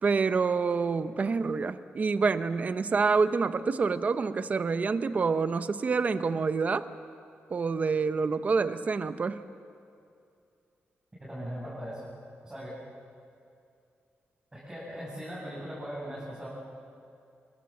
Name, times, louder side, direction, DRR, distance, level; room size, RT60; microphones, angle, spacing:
voice 1, 0.0-6.9 7.5-9.4, right 4 dB, 35° right, 11 dB, 0.9 m, -27 dB
voice 2, 11.2-12.0 12.4-12.8 14.5-16.5, equal, 15° right, -8 dB, 6.8 m, -39 dB
28.5 x 23.0 x 7.3 m, 2.5 s
wide cardioid pair, 165°, 4 cm